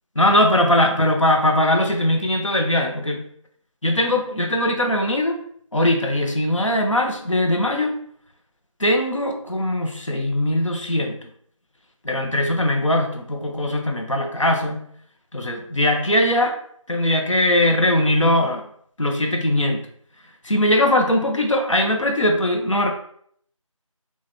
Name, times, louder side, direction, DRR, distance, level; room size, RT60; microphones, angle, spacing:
voice 1, 0.2-3.2 3.8-5.4 5.7-7.9 8.8-11.2 12.0-14.8 15.3-16.5 16.9-18.6 19.0-19.8 20.4-22.9, left 1 dB, 65° left, 2 dB, 0.8 m, -20 dB
4.0 x 2.5 x 3.3 m, 0.64 s
figure-of-eight pair, 170°, 18 cm